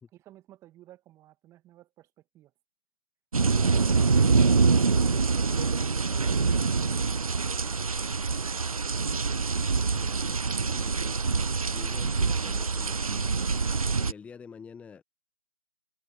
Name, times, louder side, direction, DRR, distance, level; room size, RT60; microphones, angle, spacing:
voice 1, 0.1-2.5 3.4-5.2 6.0-7.9, right 14 dB, 15° right, 1.9 m, -53 dB
sound 1, 3.3-14.1, right 4 dB, 85° right, 0.5 m, -25 dB
voice 2, 9.7-11.2 11.7-13.5 14.0-15.0, left 6 dB, 5° left, 1.3 m, -48 dB
figure-of-eight pair, 135°, 18 cm